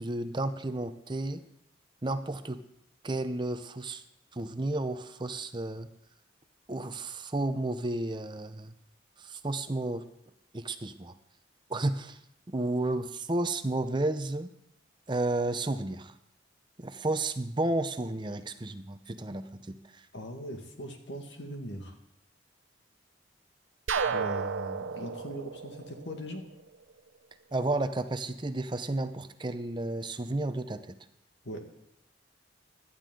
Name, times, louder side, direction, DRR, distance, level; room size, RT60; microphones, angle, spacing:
voice 1, 0.0-1.4 2.0-2.6 3.0-4.0 4.3-5.9 6.7-8.7 9.2-10.0 10.5-11.1 11.7-12.2 12.5-14.5 15.1-16.2 16.8-20.0 27.5-31.0, right 2 dB, 25° right, 10 dB, 0.6 m, -32 dB
voice 2, 20.1-22.0 24.0-26.5 31.4-31.6, equal, 70° left, 4 dB, 2.0 m, -40 dB
sound 1, 23.9-26.7, right 5 dB, 90° right, 0.7 m, -33 dB
17.0 x 12.0 x 3.8 m, 0.78 s
head